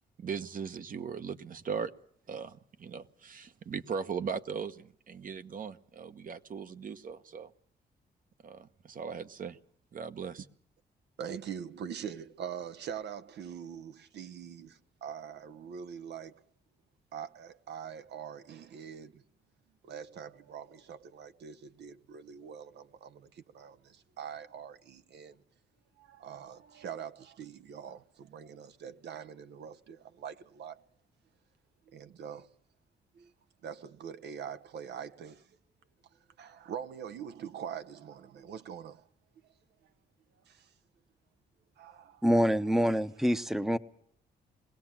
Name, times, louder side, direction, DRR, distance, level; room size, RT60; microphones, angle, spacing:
voice 1, 0.2-1.9 2.3-7.5 8.4-9.6 9.9-10.5, right 6 dB, 50° right, 1.1 m, -38 dB
voice 2, 11.2-16.4 17.1-19.2 19.8-25.4 26.0-30.8 31.9-32.6 33.1-33.3 33.6-35.5 36.1-39.1 39.8-39.9 40.4-40.7 41.8-42.2 43.2-43.4, right 8 dB, 75° right, 0.8 m, -44 dB
voice 3, 42.2-43.8, equal, ahead, 0.8 m, -26 dB
21.5 x 17.0 x 7.3 m
cardioid pair, 95°, 18 cm